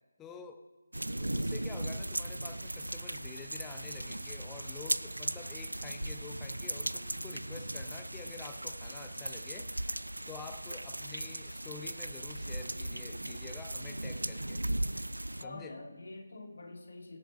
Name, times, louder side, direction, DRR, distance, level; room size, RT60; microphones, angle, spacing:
voice 1, 0.2-0.6 1.2-9.7 10.3-14.7 15.4-15.8, left 6 dB, 10° left, 7 dB, 0.8 m, -49 dB
sound 1, 0.9-15.4, right 1 dB, 75° right, 0.5 m, -37 dB
voice 2, 15.3-17.2, left 2 dB, 50° left, 1 dB, 3.0 m, -46 dB
24.0 x 8.0 x 4.2 m, 1.2 s
figure-of-eight pair, 155°, 0 cm